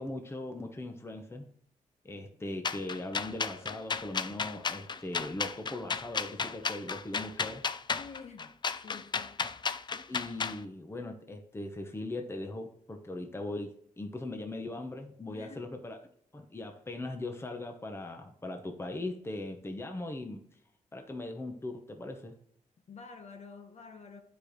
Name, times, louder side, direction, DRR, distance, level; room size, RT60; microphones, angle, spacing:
voice 1, 0.0-1.5 2.0-7.6 10.1-16.0 16.3-20.4 20.9-22.3, left 2 dB, 20° left, 1.0 m, -39 dB
sound 1, 2.6-10.6, left 5 dB, 35° left, 0.4 m, -33 dB
voice 2, 7.9-8.5 8.8-9.4 15.3-15.7 22.9-24.2, left 5 dB, 55° left, 1.2 m, -48 dB
9.4 x 5.1 x 3.1 m
cardioid pair, 105°, 13 cm